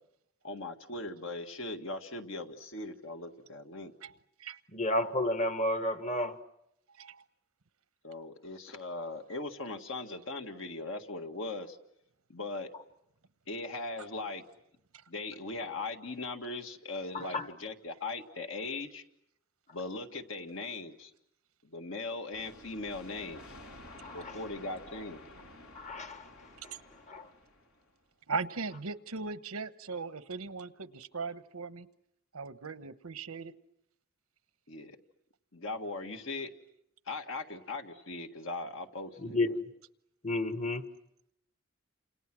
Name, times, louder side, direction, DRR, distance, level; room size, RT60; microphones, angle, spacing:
voice 1, 0.4-3.9 8.0-11.8 12.3-12.7 13.5-14.4 15.1-19.0 19.7-21.1 21.6-23.4 24.1-25.2 34.7-35.0 35.5-36.5 37.1-39.6, left 2 dB, 65° left, 1.9 m, -39 dB
voice 2, 4.7-6.4 17.1-17.5 24.0-24.3 25.7-26.3 26.6-26.7 27.1-27.3 39.2-39.5 40.2-40.8, left 1 dB, 35° left, 1.5 m, -31 dB
sound 1, 22.3-27.9, left 1 dB, 85° left, 4.1 m, -52 dB
voice 3, 28.3-31.9 32.3-33.5, right 4 dB, 90° right, 1.0 m, -38 dB
29.5 x 27.5 x 6.2 m
head